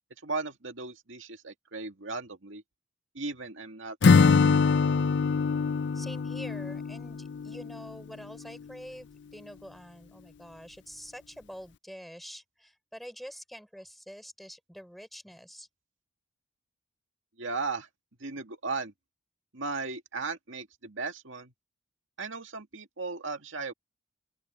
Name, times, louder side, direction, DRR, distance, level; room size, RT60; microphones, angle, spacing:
voice 1, 0.2-2.6 3.1-4.6 17.4-17.9 18.2-18.9 19.5-21.5 22.2-23.7, right 4 dB, 70° right, 2.1 m, -36 dB
Acoustic guitar / Strum, 4.0-7.9, left 5 dB, 55° left, 0.4 m, -23 dB
voice 2, 5.9-15.7, equal, ahead, 3.6 m, -46 dB
open air
head